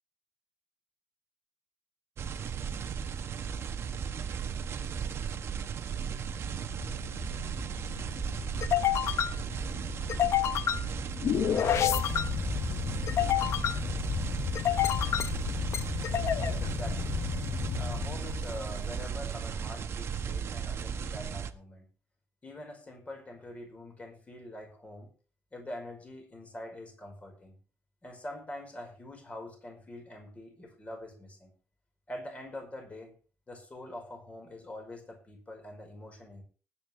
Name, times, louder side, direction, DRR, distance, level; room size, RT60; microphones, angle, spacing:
sound 1, 2.2-21.5, right 7 dB, 45° right, 1.2 m, -36 dB
sound 2, 6.3-19.0, left 10 dB, 50° left, 0.8 m, -31 dB
voice 1, 16.4-17.2 17.8-21.9 22.4-25.1 25.5-27.5 28.0-31.5 32.1-33.1 33.5-36.4, left 1 dB, 20° left, 2 dB, 5.0 m, -44 dB
20.0 x 8.9 x 3.4 m, 0.38 s
cardioid pair, 130°, 6 cm